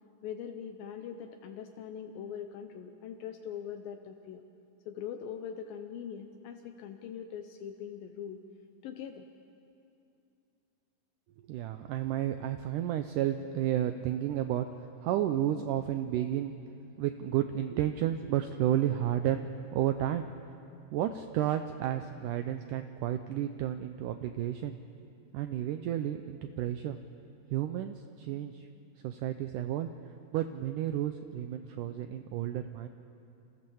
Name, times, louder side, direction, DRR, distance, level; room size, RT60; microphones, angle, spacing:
voice 1, 0.2-4.4 4.9-8.4 8.8-9.3, left 8 dB, 75° left, 5 dB, 2.5 m, -42 dB
voice 2, 11.5-16.5 17.0-20.3 20.9-24.8 25.3-27.0 27.5-28.7 29.0-29.9 30.3-32.9, right 11 dB, 80° right, 8 dB, 1.9 m, -32 dB
29.5 x 15.0 x 7.1 m, 2.6 s
omnidirectional pair, 4.3 m